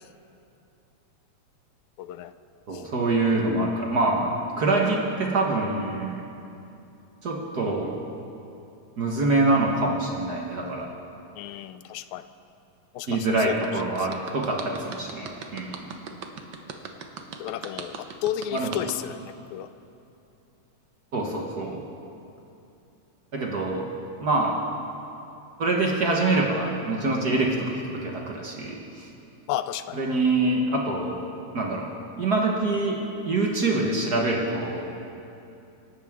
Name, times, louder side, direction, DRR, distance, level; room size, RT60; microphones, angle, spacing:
voice 1, 2.0-2.3 2.7-2.8 11.4-12.2 12.9-13.6 14.0-14.1 17.4-19.2 19.5-19.7 27.3-27.5 29.5-30.0, left 11 dB, 85° left, 12 dB, 2.0 m, -32 dB
voice 2, 2.7-6.2 7.2-7.9 9.0-10.9 13.1-15.8 18.5-18.7 21.1-21.9 23.3-24.6 25.6-29.1 29.9-31.2 31.5-31.9 32.2-33.0 33.3-34.8, right 2 dB, 50° right, -1 dB, 1.3 m, -25 dB
sound 1, 13.6-18.9, right 6 dB, 90° right, 0.9 m, -38 dB
25.5 x 12.0 x 3.6 m, 2.7 s
omnidirectional pair, 3.3 m